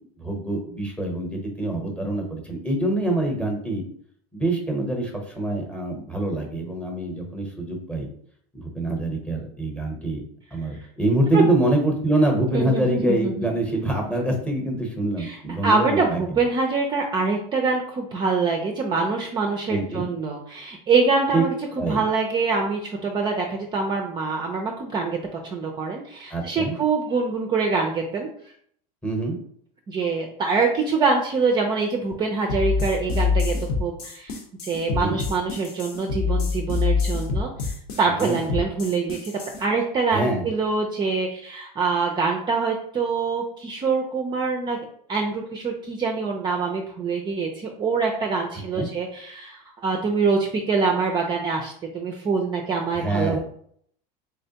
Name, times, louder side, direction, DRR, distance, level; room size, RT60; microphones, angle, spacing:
voice 1, 0.2-3.8 4.3-8.1 8.5-10.2 10.5-16.4 19.7-20.1 21.3-21.4 21.8-22.0 26.3-26.7 29.0-29.4 34.9-35.2 38.2-38.6 40.1-40.4 48.7-48.9 52.9-53.4, right 2 dB, 5° left, 1 dB, 0.8 m, -25 dB
voice 2, 12.5-13.5 15.2-28.3 29.9-39.3 39.6-44.8 45.1-53.4, right 4 dB, 25° right, 2 dB, 0.4 m, -25 dB
sound 1, 32.5-39.6, left 5 dB, 75° left, 1.0 m, -25 dB
3.8 x 3.2 x 2.8 m, 0.64 s
supercardioid pair, 140°, 20 cm